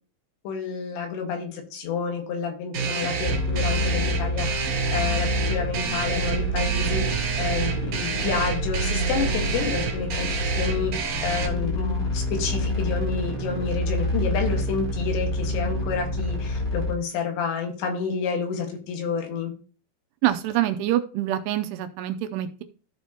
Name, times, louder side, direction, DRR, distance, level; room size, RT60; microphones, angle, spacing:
voice 1, 0.5-19.5, left 5 dB, 85° left, 2 dB, 3.8 m, -29 dB
sound 1, 2.7-11.5, right 6 dB, 60° right, 2.6 m, -29 dB
sound 2, 3.2-16.9, equal, 15° left, 1.9 m, -27 dB
voice 2, 20.2-22.6, right 13 dB, 80° right, 9 dB, 2.6 m, -25 dB
14.5 x 4.9 x 2.9 m, 0.37 s
omnidirectional pair, 5.0 m